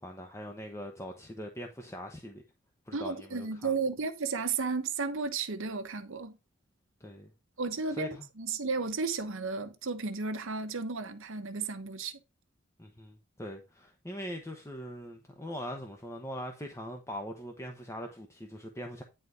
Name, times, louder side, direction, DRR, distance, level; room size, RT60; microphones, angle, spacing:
voice 1, 0.0-2.4 2.9-3.7 7.0-7.3 7.9-8.3 12.8-19.0, equal, 15° left, 1.0 m, -41 dB
voice 2, 2.9-6.4 7.6-12.1, right 4 dB, 70° right, 1.1 m, -33 dB
10.0 x 4.1 x 4.8 m
head